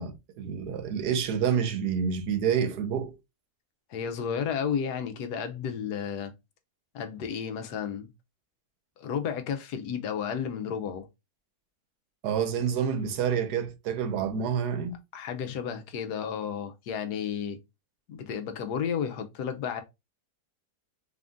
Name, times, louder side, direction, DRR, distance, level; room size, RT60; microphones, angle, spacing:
voice 1, 0.0-3.1 12.2-15.0, right 7 dB, 85° right, 1.3 m, -28 dB
voice 2, 3.9-6.3 6.9-8.1 9.0-11.1 15.1-17.6 18.1-19.8, left 7 dB, 80° left, 1.3 m, -32 dB
4.1 x 2.5 x 3.5 m
omnidirectional pair, 1.7 m